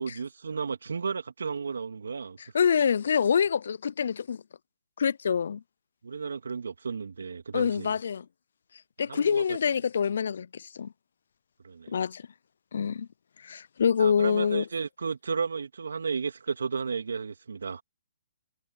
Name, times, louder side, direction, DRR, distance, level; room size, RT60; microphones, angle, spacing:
voice 1, 0.0-2.4 6.0-7.9 9.1-9.6 11.6-11.9 14.0-17.8, right 5 dB, 80° right, 3.0 m, -33 dB
voice 2, 2.5-4.4 5.0-5.6 7.5-8.3 9.0-10.9 11.9-12.3 12.7-13.1 13.4-14.6, left 7 dB, 65° left, 0.4 m, -26 dB
hypercardioid pair, 140°, 0 cm